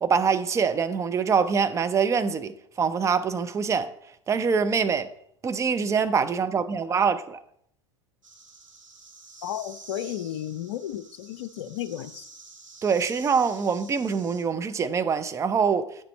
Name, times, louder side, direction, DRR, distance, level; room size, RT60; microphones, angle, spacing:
voice 1, 0.0-3.9 4.3-5.1 5.4-7.4 12.8-15.9, right 6 dB, 20° right, 0.6 m, -24 dB
sound 1, 8.2-14.4, right 3 dB, 80° right, 1.3 m, -48 dB
voice 2, 9.4-12.3, left 11 dB, 55° left, 0.6 m, -33 dB
8.9 x 6.8 x 4.2 m
figure-of-eight pair, 85°, 16 cm